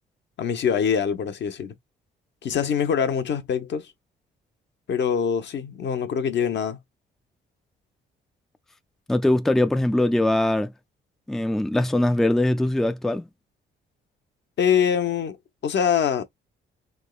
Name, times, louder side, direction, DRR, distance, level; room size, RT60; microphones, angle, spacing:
voice 1, 0.4-1.7 2.4-3.9 4.9-6.8 14.6-15.4 15.6-16.2, left 7 dB, 60° left, 0.9 m, -24 dB
voice 2, 9.1-10.7 11.3-13.3, left 1 dB, ahead, 0.4 m, -21 dB
3.6 x 2.9 x 2.3 m
cardioid pair, 90°, 20 cm